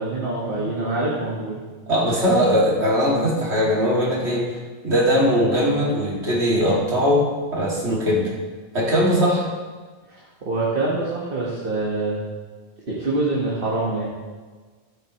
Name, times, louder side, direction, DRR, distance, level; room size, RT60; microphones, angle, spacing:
voice 1, 0.0-1.6 2.0-2.2 10.1-10.2 10.5-12.2 12.9-14.1, right 2 dB, 55° right, -6 dB, 1.9 m, -25 dB
voice 2, 1.9-4.6 4.8-7.2 7.5-8.2 8.7-9.5, equal, 80° right, -6 dB, 3.0 m, -20 dB
13.0 x 12.0 x 3.2 m, 1.4 s
omnidirectional pair, 1.1 m